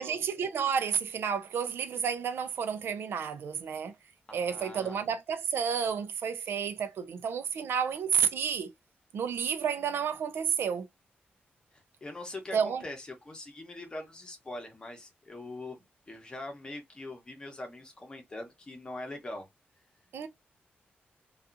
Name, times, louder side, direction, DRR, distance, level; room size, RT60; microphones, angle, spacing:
voice 1, 0.0-3.9 4.3-8.7 9.1-10.9 12.5-12.8 20.1-20.3, right 7 dB, 90° right, 0.5 m, -31 dB
voice 2, 4.3-5.0 12.0-19.5, left 2 dB, 25° left, 0.8 m, -42 dB
2.7 x 2.4 x 2.4 m
wide cardioid pair, 165°, 4 cm